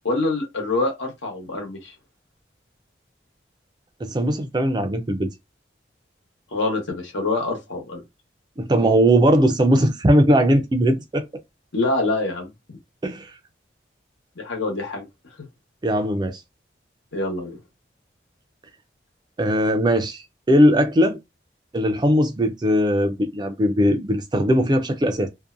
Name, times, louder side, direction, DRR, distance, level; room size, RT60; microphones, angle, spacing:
voice 1, 0.0-1.9 6.5-8.0 11.7-12.5 14.4-15.0 17.1-17.6, left 2 dB, 85° left, 1.1 m, -25 dB
voice 2, 4.0-5.3 8.6-11.3 13.0-13.3 15.8-16.4 19.4-20.2 20.5-21.2 21.7-25.3, equal, 25° right, 0.3 m, -19 dB
2.6 x 2.1 x 2.5 m
head